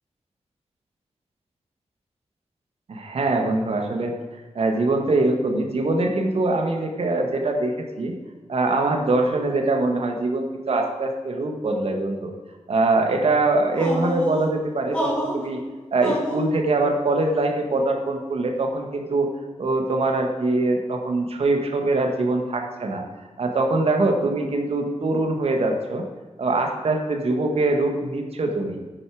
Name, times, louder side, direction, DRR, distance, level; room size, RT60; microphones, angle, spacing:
voice 1, 2.9-4.1 4.6-8.1 8.5-12.3 12.7-15.6 15.9-19.3 19.6-23.0 23.4-26.0 26.4-28.8, right 2 dB, 60° right, 3 dB, 1.8 m, -23 dB
sound 1, 13.7-14.5 14.9-15.5 16.0-16.5, equal, 10° left, 3.6 m, -28 dB
11.0 x 9.7 x 5.0 m, 1.3 s
wide cardioid pair, 140°, 12 cm